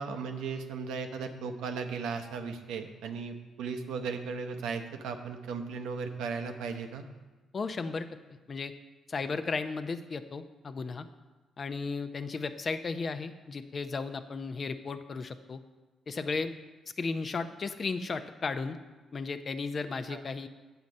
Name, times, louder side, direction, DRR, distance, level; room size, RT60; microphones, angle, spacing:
voice 1, 0.0-7.0 20.1-20.2, right 5 dB, 85° right, 6 dB, 0.8 m, -36 dB
voice 2, 7.5-8.1 8.5-8.7 9.1-11.1 11.6-15.6 16.1-16.5 17.0-18.8 19.1-20.5, left 4 dB, 40° left, 10 dB, 0.6 m, -34 dB
8.0 x 7.3 x 5.3 m, 1.2 s
cardioid pair, 90°, 0 cm